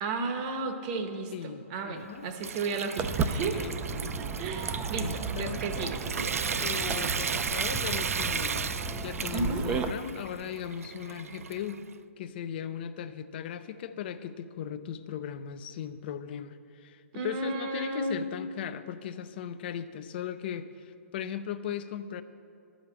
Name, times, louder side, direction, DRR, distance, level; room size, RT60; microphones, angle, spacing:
voice 1, 0.0-6.4 9.3-9.6 17.1-18.2, right 3 dB, 35° right, 6 dB, 0.9 m, -34 dB
voice 2, 1.3-2.3 3.5-4.2 5.0-5.9 6.5-11.8 12.2-22.2, left 9 dB, 45° left, 12 dB, 0.5 m, -38 dB
Water tap faucet / Sink (filling or washing) / Trickle dribble, 2.0-11.9, right 6 dB, 80° right, 0.3 m, -35 dB
Walk footsteps, 3.0-9.9, right 5 dB, 15° right, 0.4 m, -34 dB
11.0 x 5.1 x 7.1 m, 2.5 s
hypercardioid pair, 135°, 8 cm